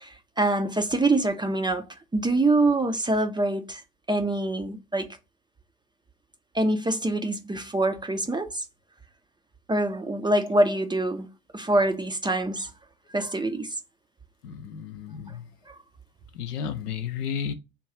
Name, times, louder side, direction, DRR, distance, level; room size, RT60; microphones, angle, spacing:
voice 1, 0.0-1.8 2.1-3.8 4.1-5.2 6.5-8.6 9.7-11.3 11.5-12.7 13.1-13.7 15.7-15.8, right 2 dB, 10° right, 0.4 m, -25 dB
voice 2, 14.4-15.4 16.4-17.5, left 7 dB, 85° left, 0.6 m, -32 dB
3.7 x 2.3 x 4.3 m
figure-of-eight pair, 55°, 45 cm